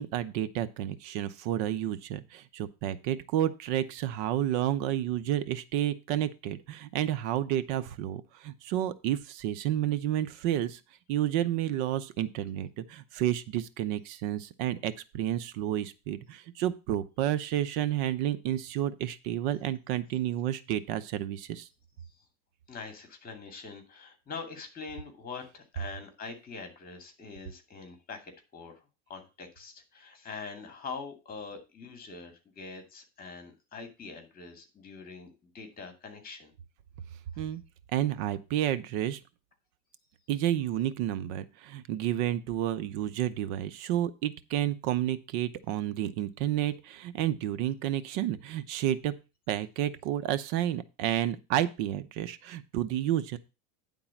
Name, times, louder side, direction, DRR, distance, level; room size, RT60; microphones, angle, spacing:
voice 1, 0.0-10.8 11.1-21.7 37.4-37.6 37.9-39.2 40.3-49.1 49.5-53.4, right 12 dB, 65° right, 13 dB, 0.9 m, -30 dB
voice 2, 22.7-36.5, left 4 dB, 25° left, 6 dB, 2.5 m, -44 dB
9.9 x 3.9 x 7.1 m, 0.29 s
supercardioid pair, 135°, 37 cm